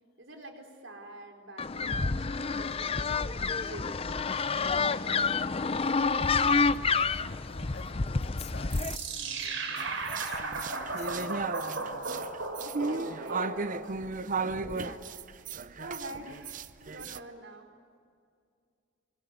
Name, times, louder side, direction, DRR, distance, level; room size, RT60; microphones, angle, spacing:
voice 1, 0.2-3.1 3.3-4.4 12.5-17.7, right 1 dB, 70° right, 3 dB, 4.4 m, -47 dB
sound 1, 1.6-9.0, left 4 dB, 30° left, 0.6 m, -28 dB
voice 2, 5.9-12.0, left 3 dB, 55° left, 2 dB, 3.2 m, -49 dB
sound 2, 8.7-14.0, right 3 dB, 85° right, 4.8 m, -36 dB
sound 3, 9.8-17.2, right 4 dB, 40° right, 0.7 m, -35 dB
25.5 x 24.0 x 8.2 m, 2.3 s
head